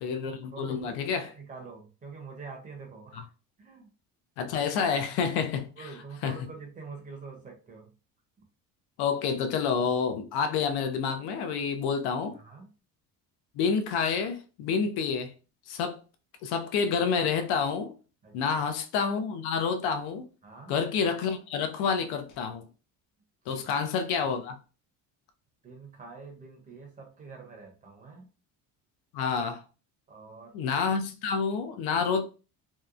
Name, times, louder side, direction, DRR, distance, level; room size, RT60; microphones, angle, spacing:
voice 1, 0.0-1.3 3.1-3.2 4.4-5.7 6.2-6.4 9.0-12.4 13.6-15.3 15.7-16.0 16.4-17.9 18.3-20.2 20.7-22.7 23.5-24.6 29.1-29.6 30.5-32.2, left 6 dB, 90° left, 0.6 m, -28 dB
voice 2, 0.5-3.2 3.6-3.9 5.8-7.9 12.3-12.7 18.2-18.6 20.4-20.7 25.6-28.3 30.1-30.5 31.9-32.1, right 4 dB, 20° right, 0.5 m, -46 dB
2.8 x 2.1 x 2.4 m
cardioid pair, 170°, 37 cm